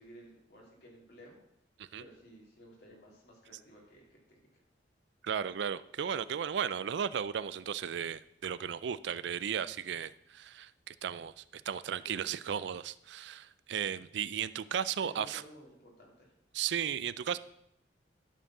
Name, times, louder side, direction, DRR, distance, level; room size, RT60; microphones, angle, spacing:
voice 1, 0.0-1.4 2.0-4.5 12.0-12.3 15.0-16.3, equal, 60° left, -3 dB, 3.0 m, -54 dB
voice 2, 5.2-15.4 16.5-17.4, right 8 dB, 70° right, 16 dB, 0.4 m, -35 dB
11.5 x 4.5 x 6.0 m, 0.77 s
head